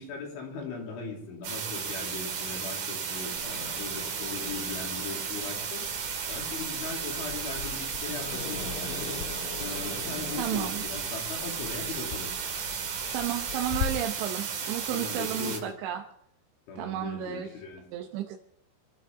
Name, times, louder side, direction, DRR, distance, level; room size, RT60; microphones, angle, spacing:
voice 1, 0.0-5.9 6.3-9.2 9.6-12.3 14.9-15.7 16.7-17.9, left 4 dB, 85° left, 0 dB, 5.5 m, -39 dB
sound 1, 1.4-15.6, right 6 dB, 55° right, 3.7 m, -34 dB
Growling, 3.4-13.9, left 7 dB, 60° left, 2.9 m, -41 dB
voice 2, 10.4-10.8 13.1-16.0 16.8-17.5 17.9-18.4, right 11 dB, 80° right, 3 dB, 3.0 m, -32 dB
27.0 x 13.0 x 3.7 m, 0.72 s
omnidirectional pair, 5.3 m